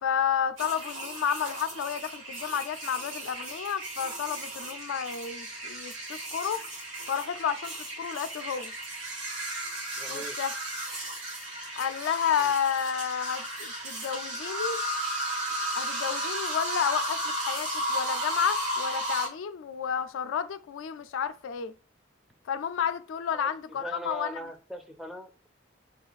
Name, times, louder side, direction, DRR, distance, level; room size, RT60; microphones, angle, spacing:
voice 1, 0.0-6.6 7.1-8.7 10.1-10.5 11.8-14.8 15.8-21.7 22.5-24.3, left 8 dB, 80° left, 0.3 m, -31 dB
sound 1, 0.6-19.3, right 1 dB, 85° right, 1.8 m, -34 dB
voice 2, 10.0-10.4 12.4-12.5 23.3-25.5, right 1 dB, ahead, 0.4 m, -41 dB
3.8 x 2.4 x 3.9 m
head